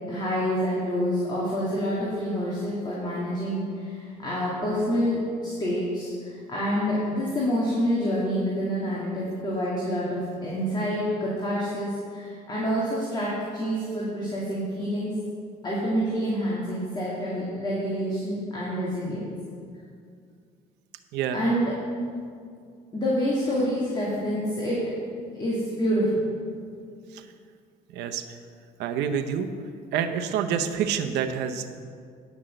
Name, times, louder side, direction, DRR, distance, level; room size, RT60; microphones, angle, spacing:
voice 1, 0.1-15.1 15.6-19.2 21.3-21.7 22.9-24.8 25.3-26.2, equal, 25° left, -7 dB, 2.5 m, -27 dB
voice 2, 27.9-28.4 28.8-29.5 29.9-31.8, right 8 dB, 85° right, 8 dB, 0.8 m, -28 dB
10.5 x 6.1 x 7.7 m, 2.3 s
cardioid pair, 110°, 17 cm